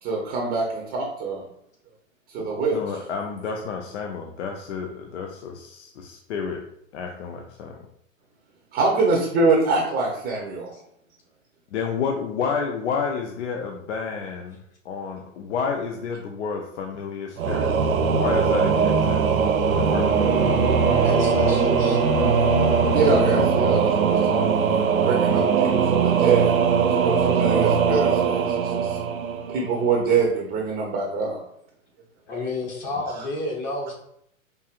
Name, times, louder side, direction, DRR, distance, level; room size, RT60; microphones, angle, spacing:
voice 1, 0.0-1.4 2.3-2.8 8.7-10.7 22.9-26.5 27.0-29.0 29.5-31.4, right 3 dB, 25° right, -1 dB, 0.7 m, -24 dB
voice 2, 2.7-6.6 6.9-7.8 11.7-14.6 14.8-17.7 18.1-19.3 19.7-20.3, left 5 dB, 60° left, 2 dB, 0.6 m, -30 dB
Singing / Musical instrument, 17.4-29.9, right 6 dB, 85° right, 0.5 m, -21 dB
Bowed string instrument, 20.0-24.1, left 3 dB, 80° left, 1.1 m, -29 dB
voice 3, 21.0-22.0 32.3-33.9, left 2 dB, 30° left, -1 dB, 0.9 m, -31 dB
4.6 x 2.5 x 2.4 m, 0.72 s
hypercardioid pair, 115°, 40 cm